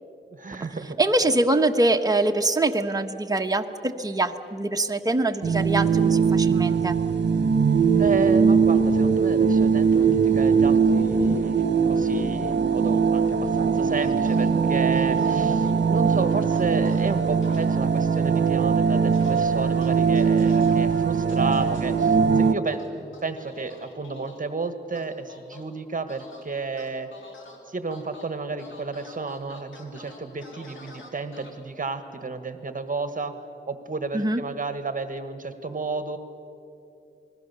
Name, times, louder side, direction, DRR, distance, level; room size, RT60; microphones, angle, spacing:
voice 1, 0.3-1.0 8.0-27.1 27.7-33.3 33.7-36.2, right 3 dB, 45° right, 9 dB, 1.5 m, -32 dB
voice 2, 1.0-7.0 34.1-34.4, right 2 dB, 20° right, 4 dB, 1.2 m, -24 dB
sound 1, 5.4-22.5, right 5 dB, 60° right, 1.2 m, -21 dB
sound 2, 14.0-14.5 14.9-15.7 16.5-17.1 17.4-17.7 19.1-19.5 19.8-20.7 21.3-21.9 22.7-24.4 25.0-25.6 26.1-26.4 26.8-27.6 27.9-28.3 28.6-31.5, left 3 dB, 85° left, 3.4 m, -47 dB
28.5 x 20.5 x 6.9 m, 2.7 s
wide cardioid pair, 95°, 19 cm